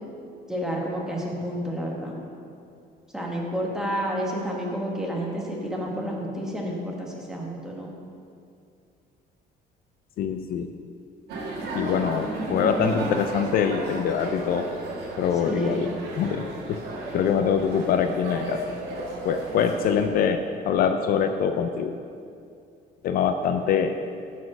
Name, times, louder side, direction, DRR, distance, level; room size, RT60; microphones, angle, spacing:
voice 1, 0.5-2.2 3.1-7.9 15.5-15.9, equal, 5° right, -3 dB, 1.2 m, -30 dB
voice 2, 10.2-10.7 11.7-14.7 15.2-15.9 16.2-16.8 17.1-22.0 23.0-23.9, left 7 dB, 60° left, 7 dB, 0.4 m, -24 dB
sound 1, 11.3-20.1, right 2 dB, 75° right, 1.6 m, -34 dB
9.4 x 4.2 x 6.4 m, 2.4 s
cardioid pair, 160°, 17 cm